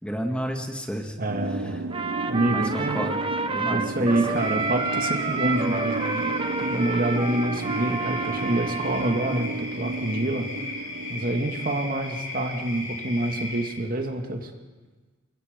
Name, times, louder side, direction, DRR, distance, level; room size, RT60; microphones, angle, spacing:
voice 1, 0.0-1.2 1.6-1.8 2.5-3.2 3.5-4.4, equal, 5° left, 2 dB, 2.0 m, -32 dB
voice 2, 1.2-1.8 2.3-3.0 3.7-6.3 6.7-10.5 11.1-14.5, right 1 dB, 45° right, 4 dB, 2.2 m, -27 dB
sound 1, 1.3-11.9, right 2 dB, 80° right, 1.2 m, -33 dB
Trumpet, 1.9-9.5, right 4 dB, 25° right, 1.2 m, -30 dB
sound 2, 4.3-13.7, left 2 dB, 40° left, 7.5 m, -36 dB
29.5 x 23.0 x 5.3 m, 1.3 s
head